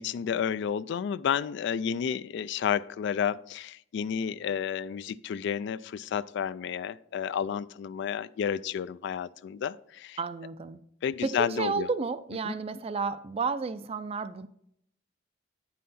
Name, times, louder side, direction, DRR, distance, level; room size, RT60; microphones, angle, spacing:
voice 1, 0.0-10.2 11.0-11.9 12.4-12.5, left 8 dB, 65° left, 0.3 m, -31 dB
voice 2, 10.2-10.8 11.2-14.5, right 4 dB, 30° right, 0.4 m, -32 dB
9.4 x 5.6 x 4.1 m
head